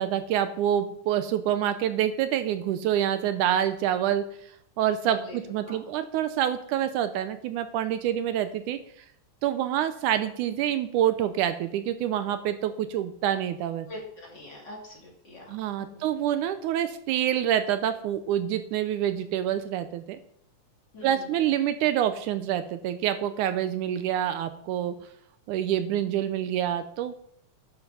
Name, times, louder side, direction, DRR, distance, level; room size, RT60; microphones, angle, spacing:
voice 1, 0.0-9.1 9.4-13.9 15.5-20.2 21.0-25.1 25.5-27.1, right 10 dB, 80° right, 10 dB, 2.1 m, -27 dB
voice 2, 5.1-5.4 5.7-5.8 13.9-15.5 15.8-16.1 20.9-21.4, left 1 dB, 35° left, -2 dB, 3.0 m, -43 dB
10.0 x 7.2 x 5.4 m, 0.68 s
omnidirectional pair, 3.7 m